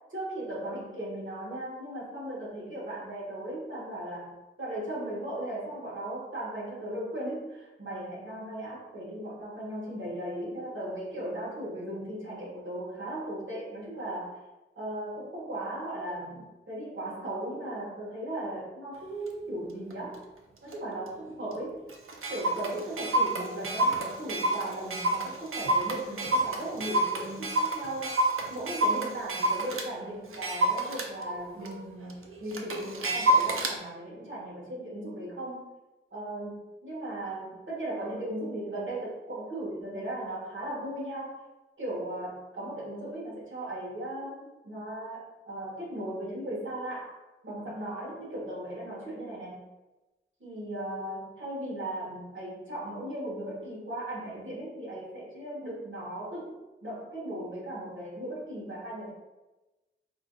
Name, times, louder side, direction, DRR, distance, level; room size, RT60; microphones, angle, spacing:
voice 1, 0.1-14.4 14.7-20.2 20.6-21.8 22.3-35.7 36.1-41.3 41.8-47.2 47.4-49.7 50.4-59.1, right 1 dB, 70° right, -6 dB, 1.4 m, -37 dB
Clock, 19.3-19.4 19.9-20.1 20.7-20.8 21.1-21.2 21.5-21.6 21.9-29.9 30.3-33.8, right 1 dB, 85° right, 0.5 m, -28 dB
4.7 x 2.5 x 2.3 m, 1.1 s
wide cardioid pair, 90°, 21 cm